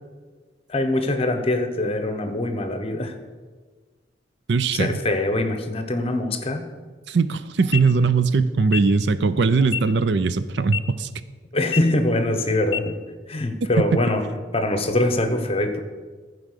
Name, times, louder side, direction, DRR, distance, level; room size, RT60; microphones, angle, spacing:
voice 1, 0.7-3.1 4.7-6.7 11.5-13.0 13.3-14.2 14.5-15.8, left 1 dB, 30° left, 8 dB, 0.9 m, -23 dB
voice 2, 4.5-4.9 7.1-11.1, right 4 dB, 65° right, 13 dB, 0.5 m, -20 dB
sound 1, 7.6-7.8 8.6-8.8 9.6-9.8 10.6-10.8 11.6-11.8 12.6-12.8, left 9 dB, 85° left, 0.6 m, -28 dB
13.5 x 5.0 x 6.6 m, 1.4 s
head